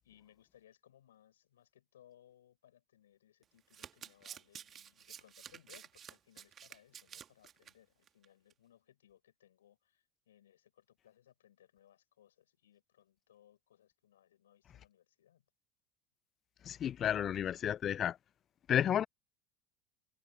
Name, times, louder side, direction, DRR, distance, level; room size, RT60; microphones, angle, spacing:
voice 1, 0.0-15.4, left 11 dB, 75° left, 6.8 m, -65 dB
Domestic sounds home sounds, 3.4-7.7 8.1-8.3 8.5-8.6, right 9 dB, 35° right, 2.2 m, -51 dB
voice 2, 16.6-18.2 18.7-19.1, left 10 dB, 40° left, 0.6 m, -31 dB
figure-of-eight pair, 75°, 0 cm